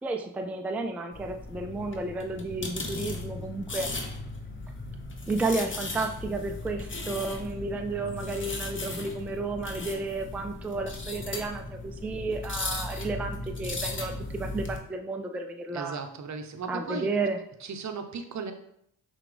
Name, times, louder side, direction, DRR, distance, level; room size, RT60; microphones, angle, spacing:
voice 1, 0.0-3.9 5.3-16.0 16.7-17.4, right 3 dB, 5° right, 5 dB, 0.3 m, -32 dB
sound 1, 1.1-14.8, left 2 dB, 25° left, 0.9 m, -37 dB
voice 2, 15.7-17.1 17.6-18.5, right 5 dB, 40° right, 7 dB, 0.7 m, -36 dB
5.7 x 2.5 x 3.3 m, 0.72 s
supercardioid pair, 55°, 46 cm